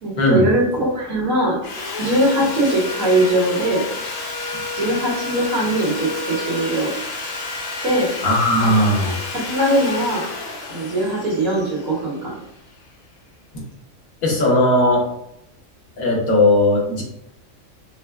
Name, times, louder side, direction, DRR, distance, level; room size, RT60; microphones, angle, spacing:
voice 1, 0.0-1.6 2.0-3.8 4.8-6.9 7.8-8.1 8.6-8.7 9.0-10.2 10.7-12.3, right 1 dB, 70° right, -5 dB, 1.6 m, -21 dB
Sawing, 1.6-12.7, left 3 dB, 55° left, 0.8 m, -30 dB
voice 2, 8.2-9.1 14.2-15.0 16.0-17.0, left 1 dB, 90° left, -2 dB, 1.4 m, -17 dB
5.4 x 2.1 x 2.3 m, 0.79 s
omnidirectional pair, 1.4 m